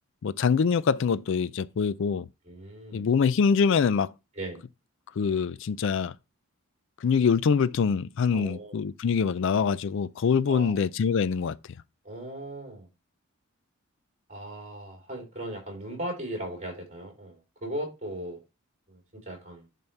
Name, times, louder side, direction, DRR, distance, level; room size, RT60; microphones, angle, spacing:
voice 1, 0.2-2.3 2.9-4.1 5.2-6.1 7.0-11.6, left 6 dB, 60° left, 0.4 m, -24 dB
voice 2, 2.4-3.1 4.4-4.6 8.3-8.8 10.5-10.8 12.0-12.9 14.3-18.4 18.9-19.0 19.3-19.7, right 1 dB, 35° right, 3.2 m, -37 dB
10.5 x 4.2 x 3.3 m
head